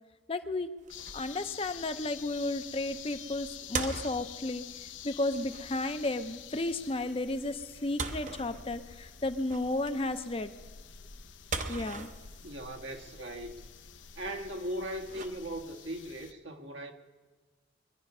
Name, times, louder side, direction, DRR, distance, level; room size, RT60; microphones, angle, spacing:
voice 1, 0.3-0.7 1.1-4.6 5.0-10.5 11.7-12.1, left 2 dB, 30° left, 0.6 m, -33 dB
sound 1, 0.8-15.9, right 4 dB, 40° right, 0.7 m, -43 dB
sound 2, 0.9-16.3, left 8 dB, 75° left, 0.7 m, -48 dB
voice 2, 12.4-13.7 14.2-16.9, right 1 dB, 75° right, 1.5 m, -39 dB
23.0 x 11.0 x 5.5 m
head